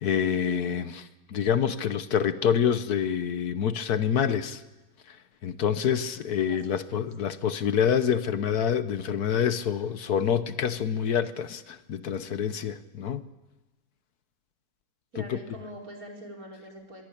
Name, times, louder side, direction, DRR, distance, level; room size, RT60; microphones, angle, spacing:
voice 1, 0.0-4.6 5.1-5.2 5.4-13.3 15.3-15.4, left 8 dB, 70° left, 12 dB, 1.5 m, -27 dB
voice 2, 6.5-6.8 15.1-17.0, equal, 60° right, 0 dB, 5.5 m, -43 dB
25.0 x 21.5 x 8.6 m, 1.1 s
omnidirectional pair, 1.7 m